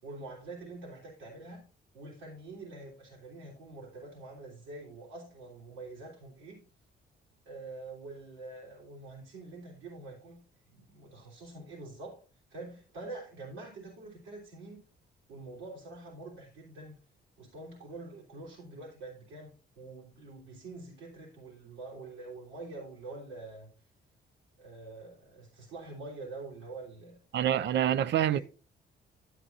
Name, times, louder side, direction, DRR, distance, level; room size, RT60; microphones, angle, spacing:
voice 1, 0.0-1.6 1.9-6.6 7.5-10.4 10.7-12.2 12.5-14.8 15.3-17.0 17.4-23.8 24.6-27.2 28.1-28.4, right 2 dB, 90° right, 3.6 m, -46 dB
voice 2, 27.3-28.4, right 10 dB, 65° right, 0.5 m, -26 dB
12.5 x 7.8 x 2.8 m
cardioid pair, 90°, 20 cm